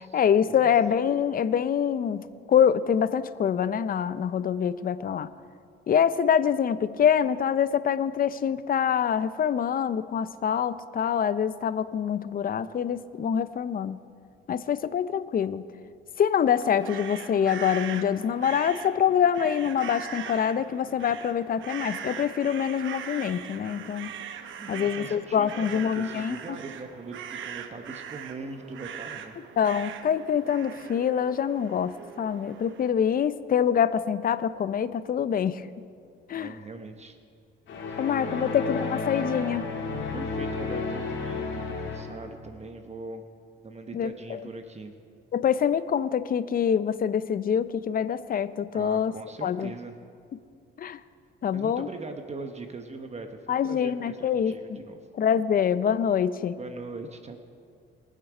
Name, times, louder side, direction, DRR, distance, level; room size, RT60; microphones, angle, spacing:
voice 1, 0.0-2.2 2.5-5.3 5.9-14.0 14.5-15.6 16.2-24.1 24.7-26.4 29.6-35.6 36.3-36.5 38.0-39.6 43.9-44.4 45.3-49.1 49.4-49.7 50.8-51.0 51.4-51.9 53.5-54.8 55.2-56.5, left 8 dB, 45° left, 14 dB, 0.6 m, -25 dB
sound 1, 16.5-32.9, right 8 dB, 75° right, 0.9 m, -41 dB
voice 2, 24.6-29.3 36.3-37.2 37.9-38.6 40.1-43.3 43.6-44.9 48.7-49.9 51.5-55.0 56.6-57.4, right 3 dB, 35° right, 6 dB, 1.0 m, -41 dB
sound 2, 37.7-42.3, left 3 dB, 75° left, 2.3 m, -32 dB
22.0 x 7.5 x 4.9 m, 2.3 s
cardioid pair, 90°, 20 cm